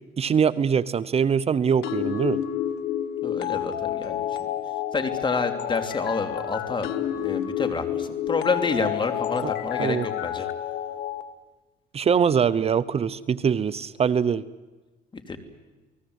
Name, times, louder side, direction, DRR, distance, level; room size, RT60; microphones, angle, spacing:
voice 1, 0.2-2.4 9.4-9.5 9.8-10.1 11.9-14.4, right 7 dB, 35° right, 15 dB, 0.8 m, -23 dB
sound 1, 1.8-11.2, left 11 dB, 90° left, 2.0 m, -29 dB
voice 2, 3.2-4.3 4.9-6.9 7.2-10.5 15.1-15.4, left 4 dB, 30° left, 7 dB, 3.1 m, -28 dB
29.5 x 19.5 x 8.1 m, 1.2 s
cardioid pair, 110°, 17 cm